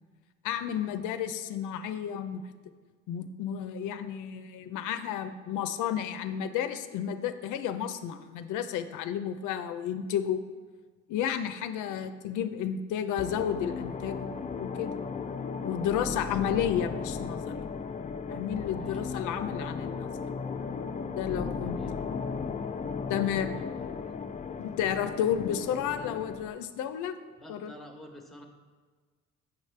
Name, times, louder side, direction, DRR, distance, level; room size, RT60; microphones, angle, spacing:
voice 1, 0.4-2.5 3.1-10.4 11.1-14.3 14.6-14.9 15.6-17.6 18.3-20.1 21.2-21.8 23.1-23.5 24.6-27.2 27.5-27.7, left 9 dB, 85° left, 10 dB, 0.5 m, -32 dB
voice 2, 11.7-12.1 18.6-19.0 20.7-20.8 21.6-22.1 23.5-23.9 27.4-28.5, equal, ahead, 2 dB, 0.9 m, -52 dB
sound 1, 13.2-26.5, left 5 dB, 25° left, 0.3 m, -36 dB
6.5 x 6.0 x 3.2 m, 1.5 s
cardioid pair, 90°, 30 cm